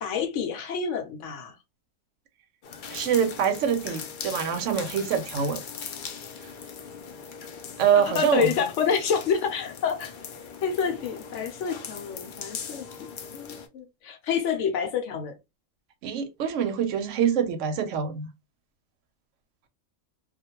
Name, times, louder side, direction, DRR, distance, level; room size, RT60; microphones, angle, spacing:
voice 1, 0.0-1.5 8.1-10.1 10.6-12.9 13.3-15.3, left 7 dB, 65° left, 0.9 m, -28 dB
sound 1, 2.6-13.7, left 6 dB, 90° left, 0.4 m, -40 dB
voice 2, 2.9-5.6 7.8-8.6 16.0-18.3, right 7 dB, 70° right, 0.9 m, -25 dB
2.4 x 2.1 x 2.8 m
omnidirectional pair, 1.4 m